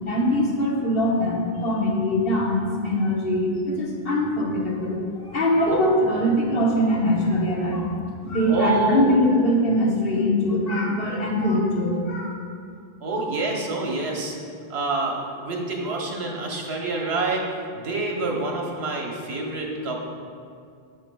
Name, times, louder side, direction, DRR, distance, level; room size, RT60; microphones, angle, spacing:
voice 1, 0.0-7.9 8.2-12.3, left 1 dB, 65° left, -3 dB, 1.3 m, -22 dB
voice 2, 8.5-9.1 13.0-14.3 14.7-17.5 17.7-20.1, right 3 dB, 90° right, 0 dB, 1.2 m, -27 dB
8.2 x 7.1 x 2.2 m, 2.3 s
omnidirectional pair, 1.0 m